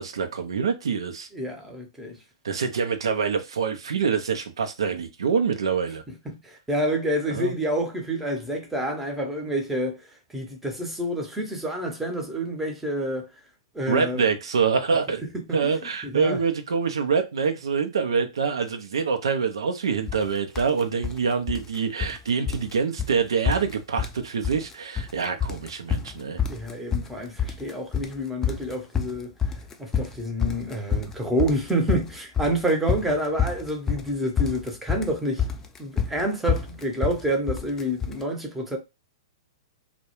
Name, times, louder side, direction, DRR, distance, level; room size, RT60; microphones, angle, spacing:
voice 1, 0.0-1.3 2.4-6.0 7.3-7.5 13.9-15.2 15.5-26.4, right 5 dB, 75° right, 0.5 m, -25 dB
voice 2, 1.3-2.2 6.2-10.0 10.3-13.3 13.7-14.2 15.5-15.6 16.0-16.4 26.5-29.3 29.8-35.4 35.8-38.8, right 1 dB, 5° right, 0.7 m, -28 dB
sound 1, 20.1-20.3 20.6-21.2 21.5-22.2 22.5-22.7 23.0-23.1 23.5-24.2 24.4-25.1 25.4-38.2, left 7 dB, 15° left, 0.4 m, -28 dB
2.2 x 2.1 x 3.0 m
hypercardioid pair, 115°, 3 cm